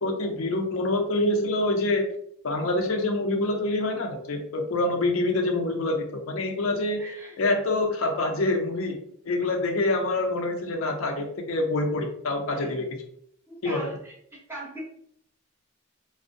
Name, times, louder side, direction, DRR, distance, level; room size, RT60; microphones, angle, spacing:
voice 1, 0.0-2.0 2.4-7.0 7.4-9.0 9.3-12.9 13.6-13.8, left 2 dB, 75° left, 4 dB, 0.5 m, -26 dB
voice 2, 7.0-7.4 12.5-12.7 13.5-14.8, right 1 dB, 10° right, -4 dB, 0.7 m, -40 dB
2.5 x 2.0 x 2.5 m, 0.67 s
head